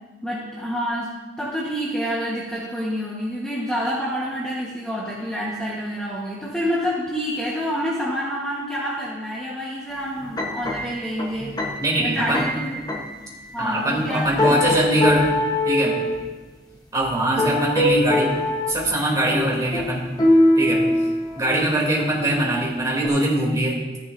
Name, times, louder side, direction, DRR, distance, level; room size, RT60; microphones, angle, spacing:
voice 1, 0.2-11.6 12.0-12.7 13.5-15.0, equal, 5° left, -6 dB, 1.3 m, -28 dB
sound 1, 10.2-13.2 13.9-14.0 14.4-16.3 17.2-18.8 19.3-21.7 22.1-22.5 23.0-23.1, left 1 dB, 25° left, 1.1 m, -22 dB
voice 2, 11.8-12.4 13.6-15.3 15.6-16.0 16.9-18.3 18.7-20.1 20.5-20.8 21.4-23.8, right 1 dB, 20° right, -4 dB, 3.0 m, -22 dB
14.0 x 9.9 x 2.6 m, 1.2 s
head